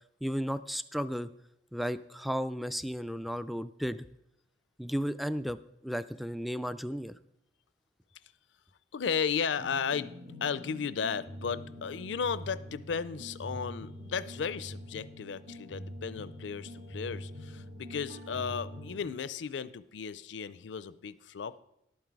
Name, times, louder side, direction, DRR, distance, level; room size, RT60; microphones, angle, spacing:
voice 1, 0.2-1.3 1.7-4.1 4.8-7.1, equal, ahead, 14 dB, 0.3 m, -34 dB
voice 2, 8.9-21.6, left 6 dB, 75° left, 17 dB, 0.5 m, -35 dB
sound 1, 9.5-19.0, equal, 55° right, 1.9 m, -44 dB
11.5 x 9.0 x 4.7 m, 0.81 s
head